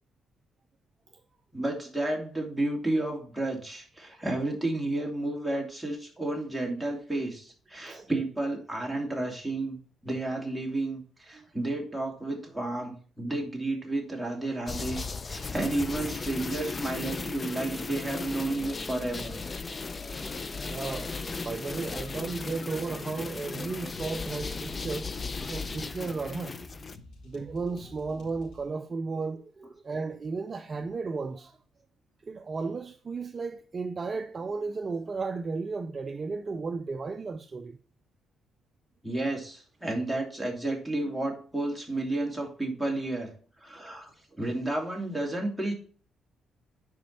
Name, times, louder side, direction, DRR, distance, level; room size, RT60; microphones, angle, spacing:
voice 1, 1.5-9.8 10.0-19.4 19.7-20.4 39.0-43.3 43.6-44.1 44.4-45.7, right 2 dB, 5° right, 2.9 m, -32 dB
sound 1, 14.7-27.0, left 4 dB, 30° left, 0.6 m, -36 dB
voice 2, 20.6-25.2 25.5-26.6 27.2-31.6 32.2-37.8, right 4 dB, 35° right, 0.5 m, -34 dB
sound 2, 21.8-28.6, left 2 dB, 80° left, 3.5 m, -50 dB
9.5 x 5.2 x 4.3 m
cardioid pair, 90°, 0 cm